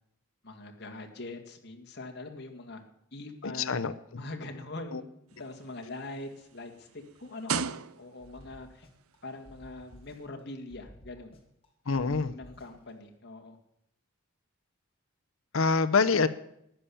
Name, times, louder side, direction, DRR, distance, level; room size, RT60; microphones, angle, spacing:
voice 1, 0.4-2.8 3.1-5.1 5.4-8.9 9.2-11.3 12.1-13.6, left 2 dB, 50° left, 3 dB, 1.9 m, -43 dB
voice 2, 3.4-4.2 4.9-5.0 11.9-12.3 15.5-16.3, left 4 dB, 65° left, 12 dB, 0.7 m, -26 dB
sound 1, 5.3-8.4 9.3-9.4, right 6 dB, 75° right, 0.6 m, -36 dB
sound 2, 8.2-9.2 9.5-10.4 10.7-11.7 12.0-12.9, equal, 25° left, 2.8 m, -53 dB
14.5 x 10.0 x 7.0 m, 0.77 s
head